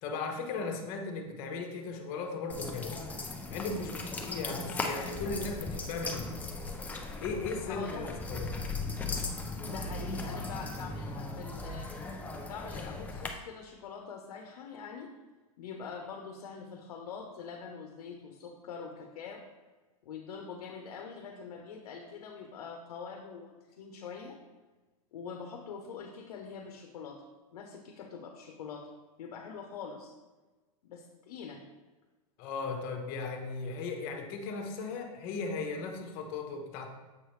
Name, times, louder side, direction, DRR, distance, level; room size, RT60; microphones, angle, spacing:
voice 1, 0.0-3.0 3.5-6.3 7.2-8.5 32.4-36.9, left 4 dB, 45° left, 4 dB, 1.0 m, -37 dB
sound 1, 2.5-13.3, left 3 dB, 10° left, 0.5 m, -38 dB
voice 2, 7.6-8.1 9.6-11.9 12.5-15.1 15.6-19.4 20.0-24.4 25.1-27.3 27.5-28.9 29.2-30.1 30.8-31.6, left 6 dB, 80° left, 3 dB, 0.8 m, -44 dB
7.5 x 4.8 x 3.2 m, 1.2 s
supercardioid pair, 140°, 19 cm